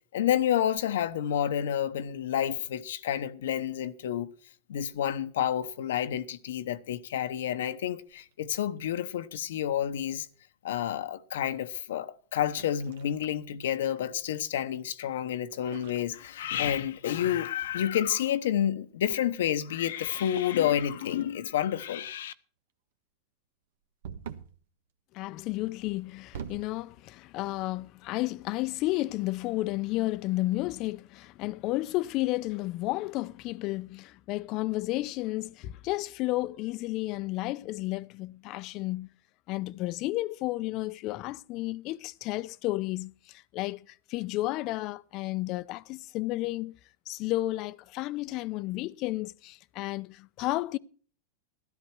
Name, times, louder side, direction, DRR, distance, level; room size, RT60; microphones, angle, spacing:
voice 1, 0.1-4.3 4.7-10.3 10.6-22.3, left 10 dB, 80° left, 1.0 m, -29 dB
sound 1, 8.1-8.9 10.0-10.4 12.4-14.1 15.5-16.9 17.2-17.5 20.0-20.6 21.0-21.6 24.0-24.6 25.8-26.8, right 7 dB, 80° right, 1.3 m, -46 dB
voice 2, 25.1-39.1 39.5-46.8 47.1-50.8, left 18 dB, 45° left, 0.6 m, -32 dB
13.5 x 13.0 x 4.6 m
supercardioid pair, 130°, 0 cm